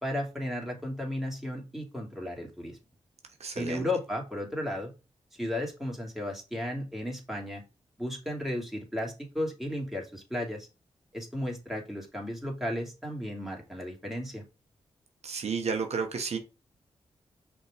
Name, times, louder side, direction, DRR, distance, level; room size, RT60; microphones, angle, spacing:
voice 1, 0.0-2.8 3.5-4.9 5.3-7.6 8.0-10.7 11.1-14.4, left 1 dB, ahead, 2.6 m, -34 dB
voice 2, 3.4-3.9 15.2-16.4, right 5 dB, 65° right, 1.0 m, -32 dB
5.5 x 3.7 x 4.9 m
cardioid pair, 55°, 12 cm